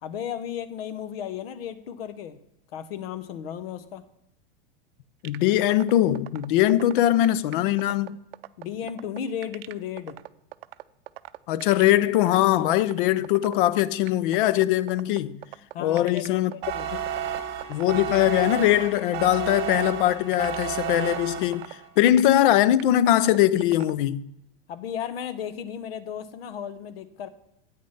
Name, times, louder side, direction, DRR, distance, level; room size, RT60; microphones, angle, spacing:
voice 1, 0.0-2.4 2.7-4.0 8.6-10.2 15.7-16.9 24.7-27.3, left 9 dB, 85° left, 0.9 m, -34 dB
voice 2, 5.2-8.2 11.5-15.4 15.8-16.5 17.7-24.2, left 13 dB, 60° left, 0.5 m, -21 dB
sound 1, 5.2-23.9, right 17 dB, 85° right, 0.5 m, -40 dB
sound 2, 16.6-21.9, right 9 dB, 35° right, 1.1 m, -32 dB
8.8 x 6.5 x 5.5 m
supercardioid pair, 145°, 29 cm